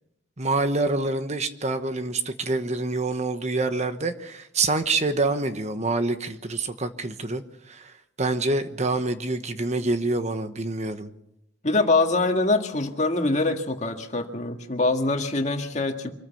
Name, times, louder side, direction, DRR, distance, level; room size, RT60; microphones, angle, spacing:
voice 1, 0.4-11.1, right 3 dB, 35° right, 9 dB, 1.2 m, -26 dB
voice 2, 11.6-16.1, left 3 dB, 40° left, 4 dB, 1.9 m, -24 dB
25.0 x 14.5 x 7.2 m, 0.81 s
head